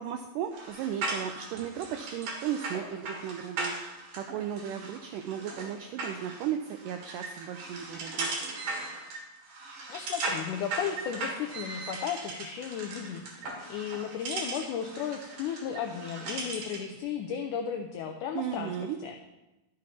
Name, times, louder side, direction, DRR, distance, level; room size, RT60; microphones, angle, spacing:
voice 1, 0.0-3.8 4.1-8.3 18.4-19.0, right 9 dB, 85° right, 7 dB, 1.8 m, -35 dB
sound 1, 0.5-16.9, right 3 dB, 65° right, 3.1 m, -38 dB
voice 2, 9.5-18.7 19.0-19.2, left 8 dB, 80° left, 5 dB, 1.8 m, -35 dB
11.5 x 6.4 x 4.2 m, 1.0 s
omnidirectional pair, 4.2 m